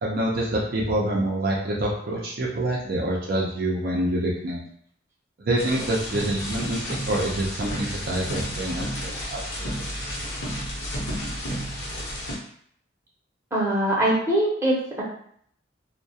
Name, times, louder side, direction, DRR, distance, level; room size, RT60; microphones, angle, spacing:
voice 1, 0.0-4.6 5.4-9.4, right 1 dB, 50° right, -3 dB, 0.4 m, -26 dB
sound 1, 5.6-12.4, equal, 65° left, 0.7 m, -32 dB
voice 2, 13.5-15.0, right 1 dB, 15° right, -6 dB, 0.7 m, -22 dB
2.3 x 2.1 x 2.6 m, 0.63 s
head